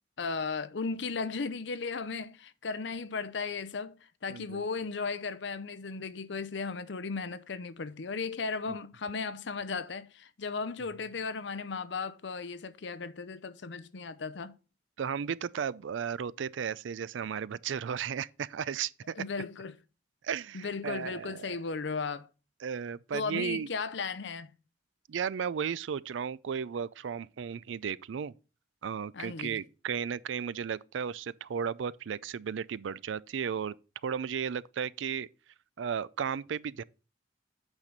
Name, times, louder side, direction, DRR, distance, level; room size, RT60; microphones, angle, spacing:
voice 1, 0.2-3.9 4.2-14.5 19.1-19.8 20.5-22.3 23.1-24.5 29.1-29.6, left 4 dB, 65° left, 0.7 m, -36 dB
voice 2, 4.3-4.6 15.0-19.2 20.2-21.6 22.6-23.7 25.1-28.3 28.8-33.7 34.0-35.3 35.8-36.8, right 7 dB, 85° right, 0.4 m, -34 dB
8.8 x 6.0 x 3.9 m
head